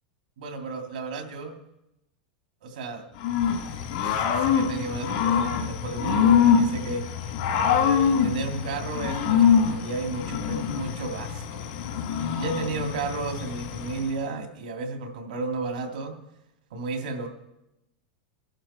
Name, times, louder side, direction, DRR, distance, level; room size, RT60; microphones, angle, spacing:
voice 1, 0.4-1.5 2.6-3.1 3.9-7.0 7.5-11.6 12.3-16.1 16.7-17.3, right 3 dB, 90° right, 4 dB, 2.7 m, -33 dB
Growling / Cricket, 3.2-14.1, left 7 dB, 75° left, 2.9 m, -24 dB
22.0 x 11.5 x 4.4 m, 0.87 s
supercardioid pair, 125°, 5 cm